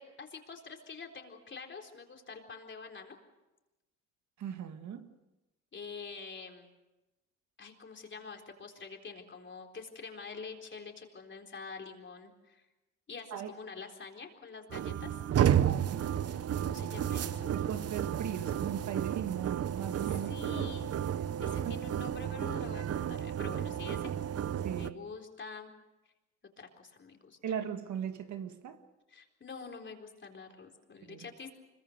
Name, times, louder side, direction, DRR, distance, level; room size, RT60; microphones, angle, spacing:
voice 1, 0.0-3.2 5.7-6.7 7.6-12.6 13.1-15.2 16.2-17.5 20.0-20.9 21.2-24.1 24.8-25.7 26.6-27.4 29.1-31.5, left 5 dB, 40° left, 4.0 m, -46 dB
voice 2, 4.4-5.1 13.3-13.5 15.6-16.1 17.5-20.7 21.7-21.8 24.6-25.0 27.4-28.8 31.1-31.3, right 9 dB, 70° right, 1.8 m, -38 dB
sound 1, 14.7-24.9, right 10 dB, 55° right, 0.9 m, -32 dB
25.5 x 22.5 x 6.6 m
cardioid pair, 90°, 30 cm